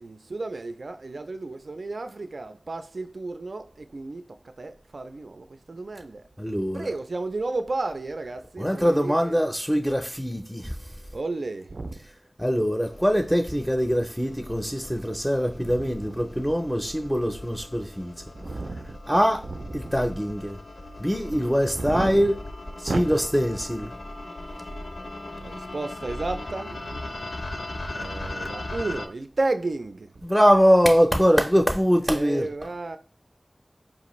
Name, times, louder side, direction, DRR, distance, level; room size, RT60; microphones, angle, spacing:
voice 1, 0.0-6.2 6.7-9.4 11.1-12.0 15.6-16.1 18.4-19.2 19.5-20.0 21.3-22.3 22.9-23.1 25.4-27.0 28.0-30.3 32.1-33.0, right 2 dB, 80° right, 0.3 m, -33 dB
voice 2, 6.4-6.9 8.6-11.0 12.4-18.1 19.1-19.4 19.7-20.6 21.0-22.4 22.8-23.9 30.2-32.5, equal, ahead, 0.4 m, -23 dB
sound 1, 12.8-29.1, left 2 dB, 70° left, 0.6 m, -39 dB
4.7 x 2.5 x 3.0 m
wide cardioid pair, 60°, 0 cm